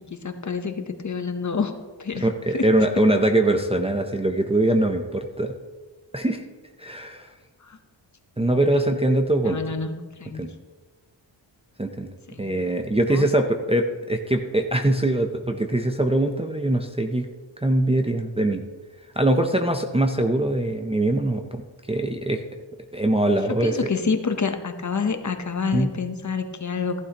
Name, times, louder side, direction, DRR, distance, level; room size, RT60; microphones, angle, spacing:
voice 1, 0.1-1.7 2.0-2.3 2.5-2.6 7.6-7.8 9.4-10.5 12.3-12.5 13.1-13.3 23.5-27.0, left 5 dB, 40° left, 7 dB, 0.9 m, -28 dB
voice 2, 2.2-5.5 6.1-6.4 6.8-7.3 8.4-9.6 10.4-10.5 11.8-12.1 12.4-17.3 17.6-18.6 19.2-21.6 21.9-22.4 22.9-23.8 25.7-25.9, right 1 dB, 15° right, 3 dB, 0.6 m, -22 dB
14.5 x 11.5 x 2.9 m, 1.3 s
wide cardioid pair, 140°, 46 cm